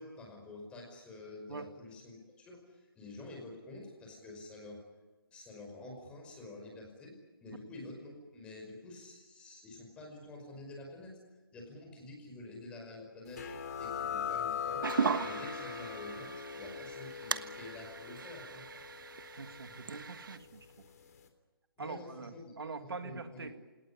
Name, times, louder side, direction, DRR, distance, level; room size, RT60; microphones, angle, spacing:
voice 1, 0.0-4.8 5.3-7.1 7.4-11.2 11.5-13.5 13.8-15.0 15.2-18.7 21.8-23.5, left 2 dB, 10° left, 1 dB, 5.3 m, -48 dB
sound 1, 13.4-20.6, left 7 dB, 45° left, 3.5 m, -41 dB
sound 2, 14.8-20.4, right 6 dB, 60° right, 1.3 m, -38 dB
voice 2, 19.3-20.7 21.8-23.5, right 4 dB, 85° right, 8 dB, 2.2 m, -43 dB
28.0 x 18.5 x 9.9 m, 1.2 s
hypercardioid pair, 165°, 12 cm